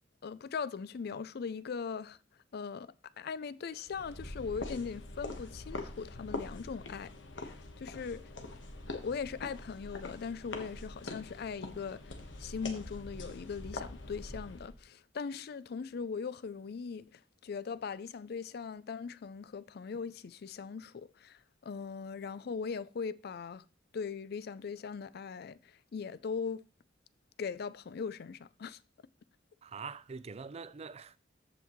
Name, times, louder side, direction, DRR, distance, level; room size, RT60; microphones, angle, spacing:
voice 1, 0.2-2.2 2.5-7.1 7.4-8.2 8.9-12.1 12.4-23.6 23.9-25.6 25.9-26.6 27.4-28.8, left 5 dB, 55° left, 0.4 m, -40 dB
sound 1, 3.9-14.8, left 2 dB, 85° left, 1.3 m, -44 dB
voice 2, 29.6-31.2, right 5 dB, 35° right, 0.4 m, -44 dB
14.0 x 5.7 x 3.1 m
head